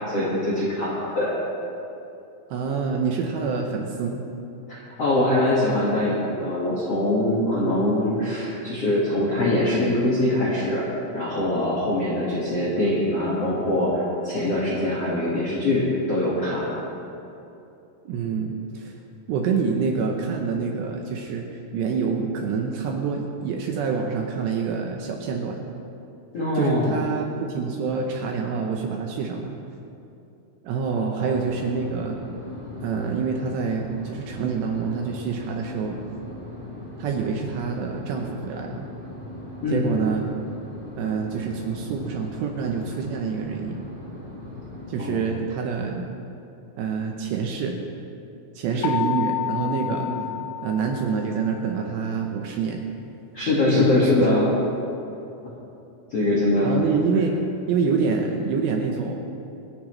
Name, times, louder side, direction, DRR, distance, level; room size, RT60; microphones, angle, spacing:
voice 1, 0.0-1.3 4.7-10.9 11.1-16.7 26.3-26.9 30.9-31.3 39.6-39.9 45.0-45.3 48.7-48.9 50.0-50.2 53.3-54.5 56.1-56.8, left 1 dB, 55° left, -6 dB, 1.7 m, -23 dB
voice 2, 2.5-4.2 7.6-7.9 18.1-19.0 19.3-21.5 21.7-25.6 26.5-29.5 30.6-32.2 32.8-36.0 37.0-38.8 39.7-40.3 41.0-43.8 44.9-46.1 46.8-47.7 48.6-50.1 50.6-52.8 53.7-54.3 56.6-57.4 57.7-59.2, right 5 dB, 75° right, 1 dB, 2.7 m, -27 dB
sound 1, 31.2-44.9, left 1 dB, 15° right, 2.2 m, -39 dB
sound 2, 48.8-51.6, left 10 dB, 85° left, 2.5 m, -29 dB
26.5 x 10.0 x 3.2 m, 2.8 s
omnidirectional pair, 5.7 m